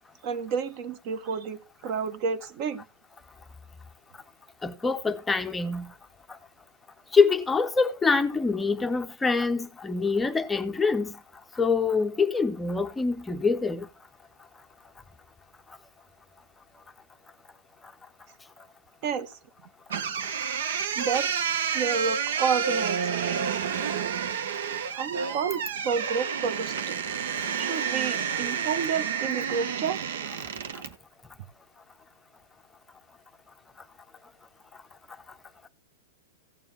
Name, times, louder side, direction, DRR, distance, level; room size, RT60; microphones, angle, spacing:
voice 1, 0.2-2.8 19.0-19.4 21.0-21.3 21.7-23.0 25.0-27.0 27.6-30.0, right 6 dB, 45° right, 1.4 m, -30 dB
voice 2, 4.6-5.9 7.1-11.2 11.6-13.9, left 4 dB, 10° left, 0.7 m, -25 dB
sound 1, 19.9-30.9, right 7 dB, 75° right, 1.2 m, -29 dB
16.0 x 7.0 x 3.5 m
hypercardioid pair, 140°, 0 cm